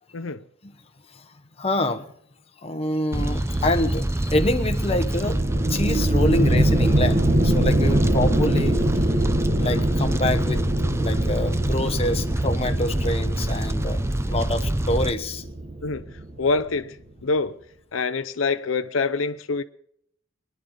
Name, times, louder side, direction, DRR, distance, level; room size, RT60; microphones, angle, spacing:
voice 1, 1.1-2.1 2.6-5.4 5.7-9.0 9.6-10.6 11.0-15.4, left 1 dB, 30° left, 1.1 m, -26 dB
Fire, 3.1-15.1, right 1 dB, 15° right, 0.6 m, -26 dB
sound 1, 5.2-16.7, right 1 dB, 35° right, 1.4 m, -24 dB
voice 2, 15.8-17.0 17.2-17.6 17.9-19.6, left 4 dB, 80° left, 0.7 m, -25 dB
23.5 x 11.0 x 3.8 m
head